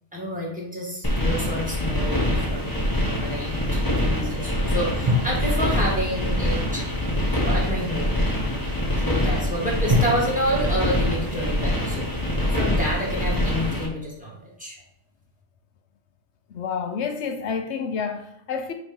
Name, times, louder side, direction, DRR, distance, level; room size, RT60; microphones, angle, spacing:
voice 1, 0.1-2.2 2.5-6.9 7.4-8.2 9.0-12.1 12.4-14.8, equal, 5° right, 1.9 m, -29 dB
sound 1, 1.0-13.9, left 1 dB, 20° left, 1.3 m, -24 dB
sound 2, 5.1-7.4 9.9-13.0, left 1 dB, 40° right, 1.3 m, -30 dB
voice 2, 16.5-18.7, left 6 dB, 80° left, 0.9 m, -29 dB
6.1 x 3.2 x 5.2 m
omnidirectional pair, 1.1 m